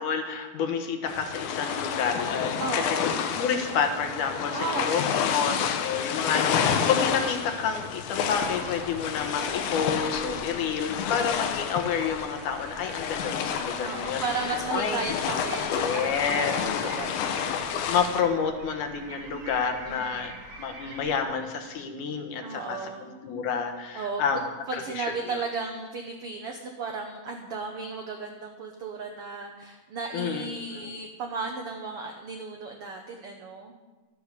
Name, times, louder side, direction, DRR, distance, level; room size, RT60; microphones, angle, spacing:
voice 1, 0.0-2.6 3.4-14.2 14.7-15.0 15.7-16.5 17.9-20.3 20.6-24.4 24.7-25.1 25.3-25.4 30.1-30.5 30.7-30.9, left 6 dB, 65° left, 6 dB, 2.3 m, -29 dB
sound 1, 1.1-18.2, left 7 dB, 85° left, 2.8 m, -30 dB
voice 2, 2.6-3.2 4.5-5.4 10.2-10.9 13.8-17.7 19.9-20.4 22.4-23.1 23.9-24.4 24.7-33.8, right 4 dB, 85° right, 3 dB, 1.2 m, -35 dB
sound 2, 8.3-21.2, right 2 dB, 45° right, 2.5 m, -46 dB
13.0 x 10.0 x 6.7 m, 1.2 s
omnidirectional pair, 4.2 m